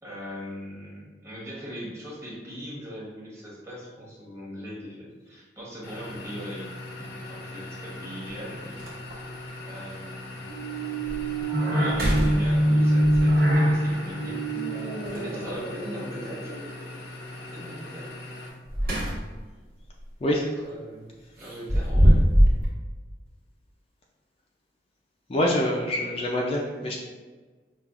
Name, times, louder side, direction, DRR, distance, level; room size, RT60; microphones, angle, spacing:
voice 1, 0.0-8.9 9.7-10.4 11.7-14.8 15.1-16.5 17.3-18.1 20.4-22.2, equal, 15° right, -6 dB, 1.0 m, -40 dB
sound 1, 5.8-18.5, left 2 dB, 80° left, 0.6 m, -40 dB
sound 2, 6.1-6.2 7.9-8.0 8.4-8.5 8.8-9.3 9.9-10.0 10.6-10.7 11.1-11.4 11.8-12.9 15.0-15.7 18.4-19.5 19.9-20.1 21.4-22.7, equal, 55° right, 1.1 m, -23 dB
sound 3, 10.5-16.9, right 1 dB, 85° right, 1.3 m, -25 dB
voice 2, 25.3-27.0, left 1 dB, 35° left, -1 dB, 0.3 m, -25 dB
5.5 x 2.3 x 2.4 m, 1.4 s
head